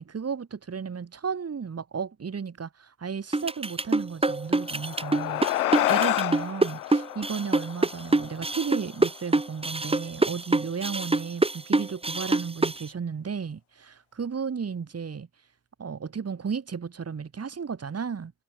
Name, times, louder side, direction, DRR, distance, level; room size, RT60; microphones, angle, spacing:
voice 1, 0.0-15.3 15.8-18.3, right 6 dB, 35° right, 4.2 m, -34 dB
sound 1, 3.3-12.8, right 2 dB, 15° right, 2.9 m, -25 dB
sound 2, 4.5-9.3, left 15 dB, 80° left, 4.4 m, -29 dB
figure-of-eight pair, 50°, 43 cm